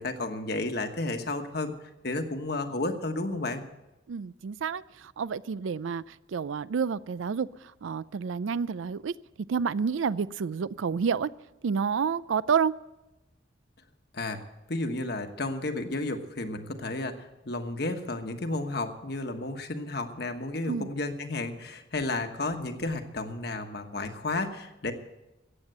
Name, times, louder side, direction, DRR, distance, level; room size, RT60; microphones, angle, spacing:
voice 1, 0.0-1.7 2.0-3.6 14.1-14.4 14.7-24.9, left 2 dB, 55° left, 6 dB, 1.3 m, -32 dB
voice 2, 4.1-9.1 9.5-11.3 11.6-12.8 20.7-20.9, right 6 dB, 80° right, 18 dB, 0.4 m, -29 dB
14.5 x 8.8 x 7.9 m, 0.99 s
head